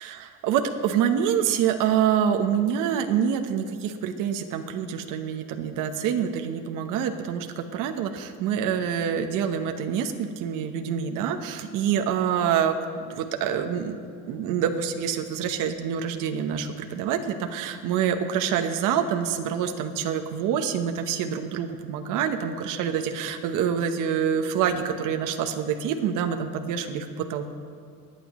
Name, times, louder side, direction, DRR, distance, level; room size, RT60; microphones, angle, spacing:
voice 1, 0.0-12.7 13.1-14.0 14.3-27.5, right 8 dB, 70° right, 5 dB, 1.0 m, -26 dB
27.0 x 9.4 x 3.1 m, 2.3 s
cardioid pair, 135°, 32 cm